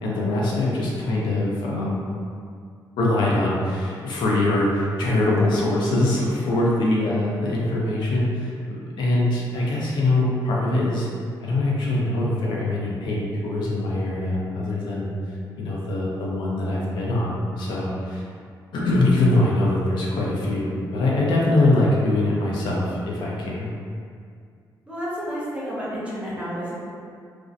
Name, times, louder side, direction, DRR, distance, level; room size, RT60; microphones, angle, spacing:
voice 1, 0.0-2.0 3.0-8.5 9.0-11.1 11.4-15.1 15.6-18.2 18.7-23.7, left 2 dB, 80° left, -4 dB, 0.5 m, -23 dB
voice 2, 24.9-26.7, equal, 15° right, -8 dB, 0.6 m, -30 dB
2.5 x 2.1 x 2.5 m, 2.2 s
wide cardioid pair, 160°, 8 cm